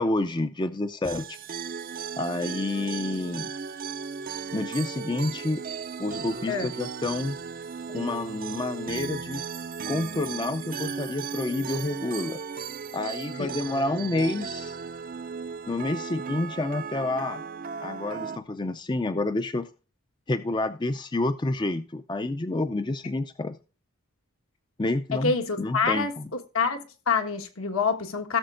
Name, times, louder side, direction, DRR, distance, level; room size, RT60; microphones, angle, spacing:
voice 1, 0.0-1.4 2.2-3.5 4.5-5.6 6.0-7.4 7.9-9.4 9.9-12.4 12.9-14.8 15.7-17.4 17.8-19.7 20.3-23.6 24.8-26.3, left 2 dB, 20° left, 0.4 m, -29 dB
sound 1, 1.0-18.4, right 6 dB, 40° right, 0.5 m, -36 dB
voice 2, 25.1-26.1 26.5-28.4, left 5 dB, 70° left, 1.5 m, -26 dB
17.0 x 6.9 x 2.5 m
head